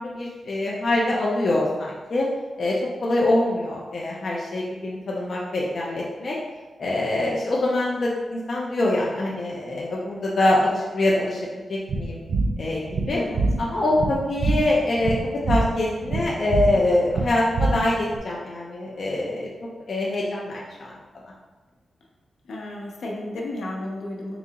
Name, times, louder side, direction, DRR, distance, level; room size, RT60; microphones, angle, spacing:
voice 1, 0.0-2.3 2.6-6.4 6.8-11.4 11.7-12.2 12.6-12.8 13.1-13.2 13.6-15.2 15.5-19.5 19.9-20.9, left 1 dB, 45° left, -4 dB, 0.5 m, -24 dB
sound 1, 11.9-18.2, right 3 dB, 85° right, 0.4 m, -25 dB
voice 2, 22.5-24.4, left 1 dB, 75° left, -2 dB, 0.8 m, -32 dB
3.9 x 2.8 x 3.6 m, 1.2 s
wide cardioid pair, 175°, 0 cm